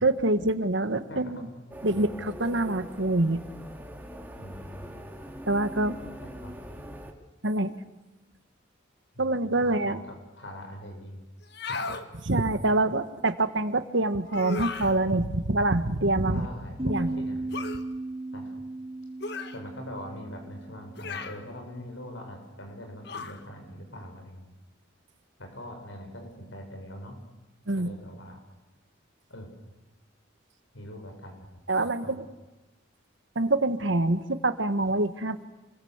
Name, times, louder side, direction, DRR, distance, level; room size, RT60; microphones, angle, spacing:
voice 1, 0.0-1.4 1.8-3.4 5.5-6.0 7.4-7.7 9.2-10.0 12.2-16.4 16.8-17.2 27.7-28.0 31.7-32.2 33.3-35.4, right 2 dB, 65° right, 11 dB, 1.5 m, -25 dB
voice 2, 1.1-1.5 1.9-2.2 4.4-5.1 6.4-6.5 9.1-11.2 11.7-11.8 16.3-17.6 18.3-18.5 19.5-24.5 25.4-27.2 27.8-28.4 29.3-29.5 30.7-31.4 31.8-32.2, equal, 75° left, 4 dB, 7.3 m, -42 dB
sound 1, 1.7-7.1, equal, 10° right, 2.6 m, -42 dB
sound 2, 11.4-12.1 14.3-15.0 17.5-17.8 19.2-19.6 21.0-21.4 23.0-23.4, left 4 dB, 55° left, 1.6 m, -35 dB
sound 3, 16.8-21.9, right 2 dB, 25° right, 2.3 m, -37 dB
28.5 x 22.0 x 8.1 m, 1.0 s
head